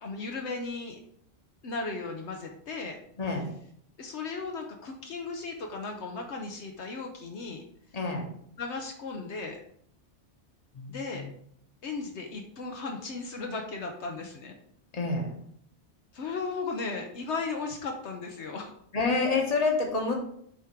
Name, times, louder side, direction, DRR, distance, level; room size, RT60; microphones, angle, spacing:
voice 1, 0.0-1.0 1.6-3.0 4.0-7.6 8.6-9.6 10.9-11.2 11.8-14.6 16.1-18.7, left 4 dB, 70° left, 2 dB, 1.1 m, -36 dB
voice 2, 3.2-3.5 7.9-8.4 10.7-11.3 14.9-15.3 18.9-20.1, left 3 dB, 35° left, 0 dB, 1.3 m, -28 dB
7.5 x 3.6 x 4.5 m, 0.67 s
omnidirectional pair, 1.2 m